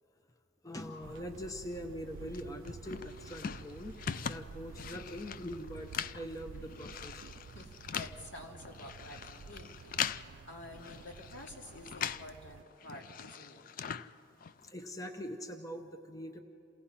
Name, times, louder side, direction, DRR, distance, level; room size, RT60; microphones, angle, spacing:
voice 1, 0.6-7.2 14.6-16.4, equal, 20° left, 5 dB, 0.7 m, -43 dB
sound 1, 1.0-12.6, right 5 dB, 85° right, 0.4 m, -51 dB
sound 2, 2.3-12.4 12.6-14.7, left 7 dB, 45° left, 0.4 m, -41 dB
voice 2, 7.5-9.9 10.5-13.7, left 1 dB, 80° left, 0 dB, 2.5 m, -49 dB
28.0 x 17.5 x 5.7 m, 2.8 s
head